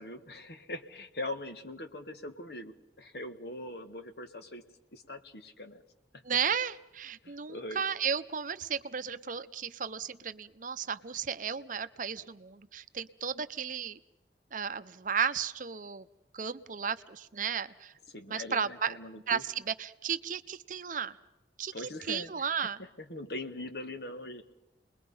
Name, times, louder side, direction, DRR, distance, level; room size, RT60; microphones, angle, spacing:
voice 1, 0.0-4.6 4.9-5.8 6.1-6.2 7.2-7.8 18.1-19.4 21.7-22.5 22.8-24.4, left 1 dB, 60° left, 8 dB, 1.7 m, -42 dB
voice 2, 6.2-14.0 14.5-16.1 16.3-17.9 18.3-19.0 19.3-21.2 21.6-21.7 22.1-22.8, right 7 dB, 45° right, 12 dB, 0.7 m, -34 dB
29.5 x 21.0 x 5.6 m, 0.96 s
head